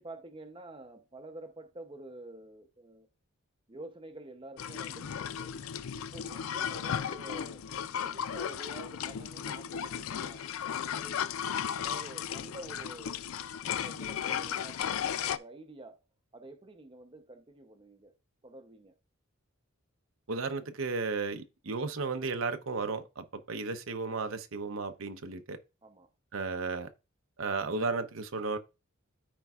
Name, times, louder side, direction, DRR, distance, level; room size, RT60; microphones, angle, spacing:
voice 1, 0.0-3.1 3.7-5.6 5.9-10.5 10.9-11.3 11.8-16.0 16.3-18.2 18.4-19.0 25.8-26.1, right 2 dB, 25° right, 0.7 m, -49 dB
sound 1, 4.6-15.4, left 8 dB, 75° left, 0.4 m, -35 dB
voice 2, 20.3-25.6 26.3-26.9 27.4-28.6, right 4 dB, 70° right, 0.8 m, -34 dB
13.5 x 4.6 x 2.4 m
head